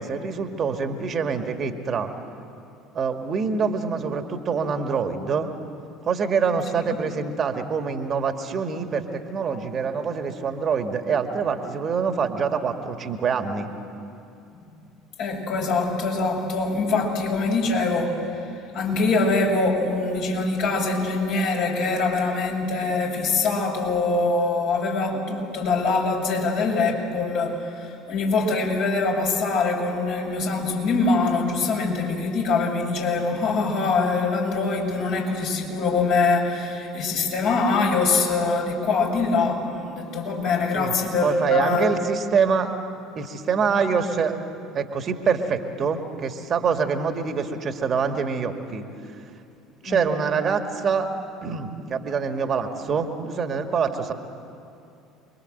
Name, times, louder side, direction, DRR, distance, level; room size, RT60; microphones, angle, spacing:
voice 1, 0.0-2.1 2.9-5.5 6.1-13.7 40.7-40.9 41.2-42.7 43.2-44.4 44.7-48.9 49.8-51.1 51.4-54.1, right 5 dB, 40° right, 6 dB, 2.0 m, -25 dB
voice 2, 15.2-41.9 49.8-50.0, left 3 dB, 55° left, 0 dB, 6.8 m, -23 dB
28.0 x 22.5 x 8.0 m, 2.6 s
figure-of-eight pair, 60°, 0 cm